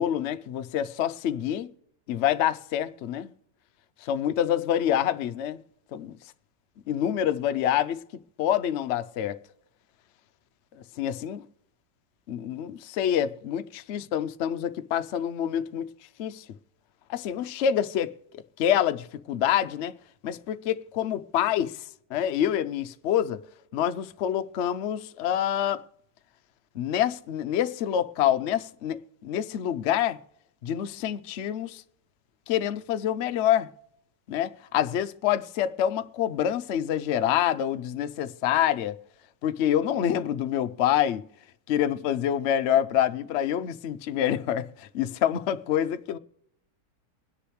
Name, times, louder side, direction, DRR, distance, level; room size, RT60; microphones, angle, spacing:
voice 1, 0.0-1.7 2.1-3.3 4.0-5.6 5.9-6.1 6.9-8.0 8.4-9.4 10.8-11.4 12.3-15.9 16.2-16.4 17.1-19.9 20.2-23.4 23.7-25.8 26.7-30.2 30.6-31.8 32.5-33.7 34.3-39.0 39.4-41.2 41.7-46.2, left 10 dB, 80° left, 0.6 m, -27 dB
24.0 x 10.0 x 3.2 m
omnidirectional pair, 1.9 m